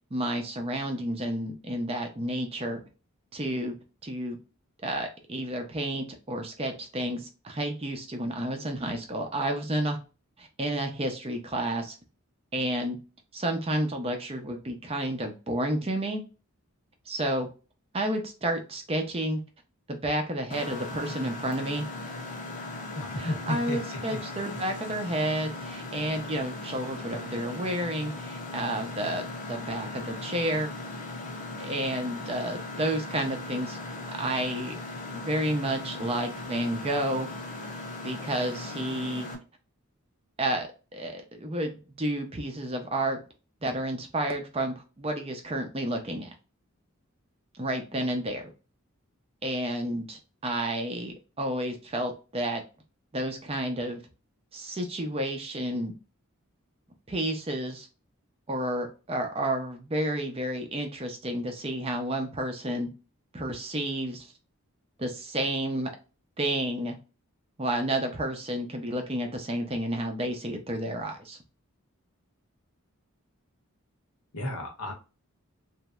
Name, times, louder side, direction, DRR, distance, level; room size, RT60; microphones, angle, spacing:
voice 1, 0.1-2.8 3.3-3.8 4.0-4.4 4.8-10.0 10.4-12.0 12.5-13.0 13.3-16.2 17.1-17.5 17.9-19.4 19.9-21.8 23.2-29.2 29.5-30.7 31.6-33.8 34.2-34.8 35.1-37.3 38.0-39.3 40.4-43.2 43.6-46.3 47.6-48.4 49.4-52.6 53.1-54.0 54.5-55.9 57.1-57.9 58.5-62.9 63.3-64.3 65.0-65.9 66.4-67.0 67.6-71.4, right 1 dB, 25° right, 4 dB, 0.5 m, -31 dB
Mechanisms, 20.5-39.3, left 2 dB, 35° left, 0.5 m, -38 dB
voice 2, 22.9-23.8 24.1-24.2 74.3-74.9, left 1 dB, 85° left, 2 dB, 1.0 m, -32 dB
3.0 x 2.6 x 2.3 m, 0.32 s
head